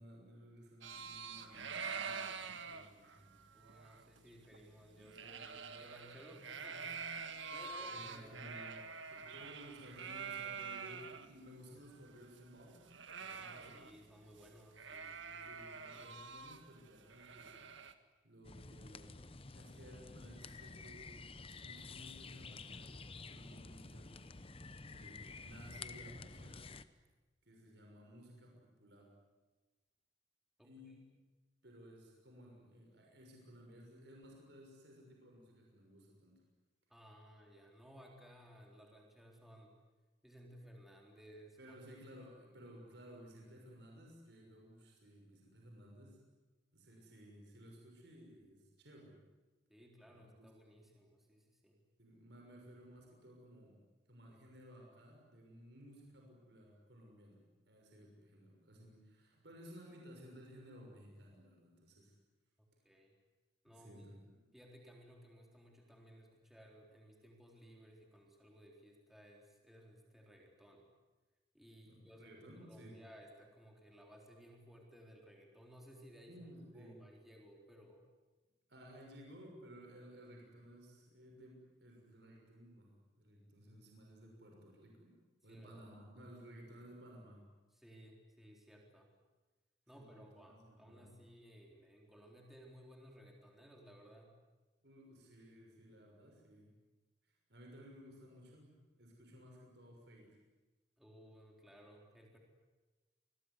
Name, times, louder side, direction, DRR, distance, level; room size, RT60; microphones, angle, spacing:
voice 1, 0.0-3.3 7.8-12.8 13.2-13.8 15.4-17.7 18.2-19.1 19.5-21.1 21.4-26.7 27.4-29.1 30.6-31.0 31.6-36.4 41.6-46.2 46.7-49.2 50.1-50.5 52.0-53.8 54.1-57.4 57.7-62.1 63.7-64.4 71.9-73.0 76.3-77.0 78.7-85.1 85.4-87.4 89.9-91.2 94.8-96.8 97.2-100.4, equal, 65° right, 0 dB, 6.4 m, -57 dB
sound 1, 0.8-11.3 11.6-11.7 11.9-14.1 14.4-14.5 14.8-17.9, right 5 dB, 90° right, 1.9 m, -46 dB
voice 2, 3.5-7.1 7.5-8.5 9.3-9.5 13.4-16.1 30.6-31.0 36.9-39.8 40.2-41.6 42.4-42.7 49.7-51.8 62.8-63.2 63.6-64.0 64.5-70.9 71.5-72.3 72.6-76.4 76.7-78.1 85.5-85.8 87.7-89.1 89.9-94.4 101.0-102.4, equal, ahead, 0 dB, 3.8 m, -59 dB
sound 2, 18.4-26.8, left 4 dB, 30° left, 0.9 m, -51 dB
27.0 x 21.0 x 9.7 m, 1.2 s
head